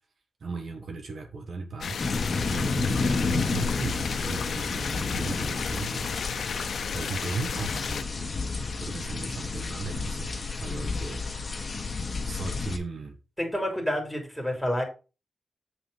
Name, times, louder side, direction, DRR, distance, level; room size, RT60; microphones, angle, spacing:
voice 1, 0.4-2.0 2.5-6.1 6.9-8.1 8.8-11.6 12.2-13.2, right 4 dB, 65° right, 1.5 m, -37 dB
sound 1, 1.8-8.0, left 6 dB, 80° left, 0.7 m, -33 dB
sound 2, 2.0-12.8, left 3 dB, 35° left, 1.6 m, -31 dB
voice 2, 13.4-14.8, equal, 5° right, 3.1 m, -28 dB
8.2 x 4.2 x 5.5 m
wide cardioid pair, 105°, 0 cm